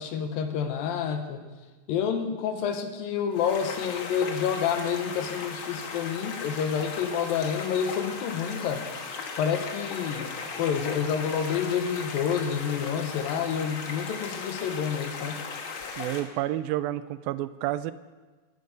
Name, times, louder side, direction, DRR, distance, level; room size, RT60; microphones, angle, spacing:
voice 1, 0.0-1.5 1.9-8.8 9.4-10.3 10.6-15.4, left 7 dB, 80° left, 7 dB, 2.8 m, -28 dB
sound 1, 3.3-16.2, left 5 dB, 55° left, 1.5 m, -37 dB
voice 2, 16.0-17.9, right 14 dB, 90° right, 15 dB, 2.4 m, -30 dB
16.5 x 11.0 x 5.3 m, 1.3 s
omnidirectional pair, 4.1 m